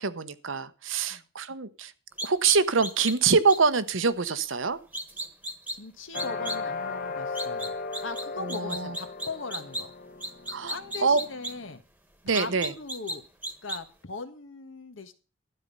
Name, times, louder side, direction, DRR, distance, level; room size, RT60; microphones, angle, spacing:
voice 1, 0.0-1.9 2.2-4.8 8.4-8.9 10.5-11.2 12.2-12.7, right 5 dB, 75° right, 12 dB, 1.0 m, -25 dB
sound 1, 2.2-3.1 3.5-3.6 4.9-5.8 6.1-6.6 7.3-8.2 8.5-9.8 10.2-11.5 12.3-13.2 13.4-13.8, right 1 dB, 10° right, 1.4 m, -34 dB
voice 2, 5.7-7.7 8.0-9.9 10.7-11.8 12.3-13.2 13.6-15.1, left 3 dB, 75° left, 9 dB, 1.5 m, -39 dB
sound 2, 6.1-11.8, left 4 dB, 50° left, 1.3 m, -36 dB
12.5 x 9.0 x 5.4 m, 0.35 s
head